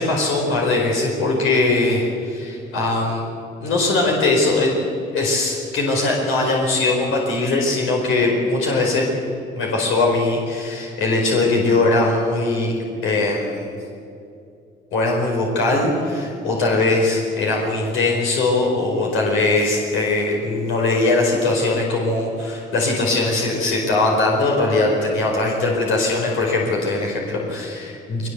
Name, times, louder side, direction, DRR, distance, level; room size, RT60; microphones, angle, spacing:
voice 1, 0.0-3.2 3.6-9.1 9.5-12.7 13.0-13.7 14.9-28.3, left 2 dB, 85° left, -1 dB, 4.8 m, -20 dB
21.0 x 20.0 x 8.1 m, 2.5 s
cardioid pair, 90°, 20 cm